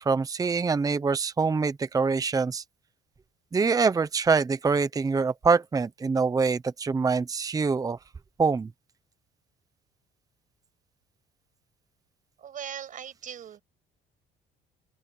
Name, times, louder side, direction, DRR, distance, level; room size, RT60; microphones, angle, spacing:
voice 1, 0.0-2.6 3.5-8.0 8.4-8.7, right 4 dB, 20° right, 0.8 m, -25 dB
voice 2, 12.4-13.6, right 9 dB, 50° right, 6.5 m, -39 dB
open air
cardioid pair, 110°, 17 cm